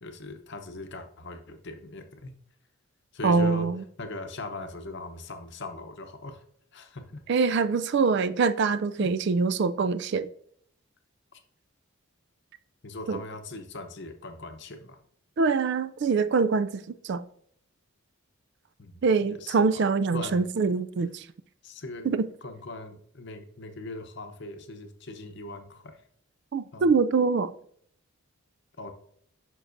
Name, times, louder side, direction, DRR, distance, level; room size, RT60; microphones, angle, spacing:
voice 1, 0.0-2.3 3.1-3.7 4.0-6.4 6.7-7.2 9.0-9.1 11.3-11.4 12.8-15.0 18.8-19.8 20.1-20.4 21.6-22.0 22.4-26.0 26.7-27.0 28.8-28.9, left 2 dB, 50° left, 0.8 m, -40 dB
voice 2, 3.2-3.8 7.3-10.3 13.1-13.2 15.4-17.2 19.0-21.2 22.1-22.3 26.5-27.5, right 4 dB, 50° right, 0.3 m, -24 dB
9.3 x 6.0 x 2.6 m
head